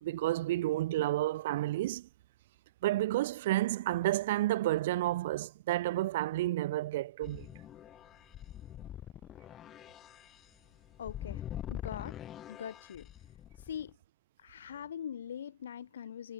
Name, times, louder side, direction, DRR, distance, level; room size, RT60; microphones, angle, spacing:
voice 1, 0.0-2.1 2.8-7.5, right 15 dB, 70° right, 2.0 m, -30 dB
sound 1, 7.2-13.9, left 11 dB, 35° left, 4.4 m, -44 dB
voice 2, 11.0-11.4 11.7-12.2 12.5-13.1 13.6-13.9 14.4-16.3, left 9 dB, 85° left, 6.9 m, -42 dB
hypercardioid pair, 110°, 0 cm